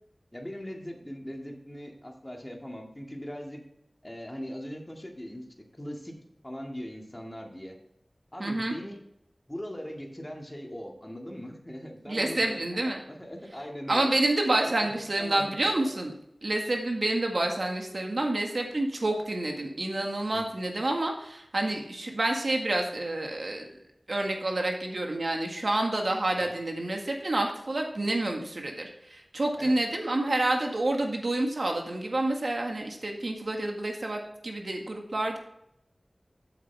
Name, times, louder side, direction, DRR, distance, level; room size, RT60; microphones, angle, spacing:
voice 1, 0.3-3.6 4.0-5.4 5.7-6.2 6.4-7.8 8.3-9.0 9.5-14.1 14.6-15.9 20.3-20.5 29.6-29.8, equal, 20° left, 1 dB, 2.1 m, -40 dB
voice 2, 8.4-8.7 12.1-13.0 13.9-16.1 16.4-23.6 24.1-35.4, right 2 dB, 70° right, 2 dB, 1.8 m, -28 dB
9.0 x 7.6 x 3.5 m, 0.79 s
wide cardioid pair, 45°, 0 cm